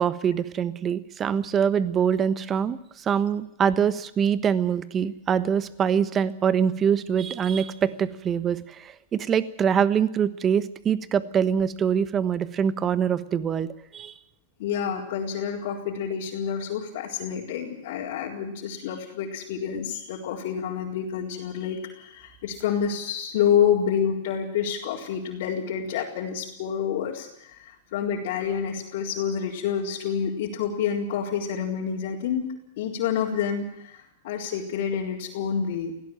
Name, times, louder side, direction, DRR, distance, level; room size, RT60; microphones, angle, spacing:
voice 1, 0.0-14.1, right 7 dB, 25° right, 14 dB, 1.3 m, -24 dB
voice 2, 14.6-32.5 32.8-35.9, left 8 dB, 60° left, -4 dB, 4.3 m, -28 dB
19.0 x 17.0 x 9.0 m, 0.80 s
supercardioid pair, 140°, 0 cm